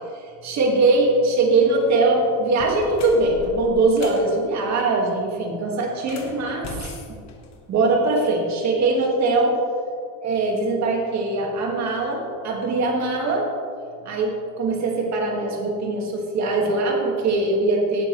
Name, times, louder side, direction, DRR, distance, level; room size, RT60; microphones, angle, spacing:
voice 1, 0.4-6.7 7.7-9.5 10.2-13.5 14.0-18.1, right 2 dB, 40° right, 0 dB, 2.2 m, -21 dB
sound 1, 1.7-1.9 2.5-4.3 5.9-8.0, left 2 dB, 40° left, 1.5 m, -39 dB
17.5 x 9.9 x 3.3 m, 2.3 s
cardioid pair, 180°, 43 cm